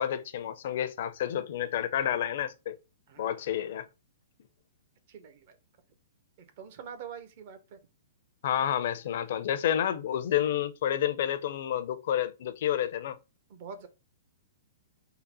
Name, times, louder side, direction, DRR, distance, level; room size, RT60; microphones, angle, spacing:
voice 1, 0.0-2.8 3.2-3.9 8.4-13.2, left 10 dB, 60° left, 0.5 m, -29 dB
voice 2, 5.1-5.6 6.4-7.8 13.5-13.9, right 7 dB, 50° right, 0.8 m, -45 dB
3.9 x 2.1 x 4.1 m
hypercardioid pair, 120°, 0 cm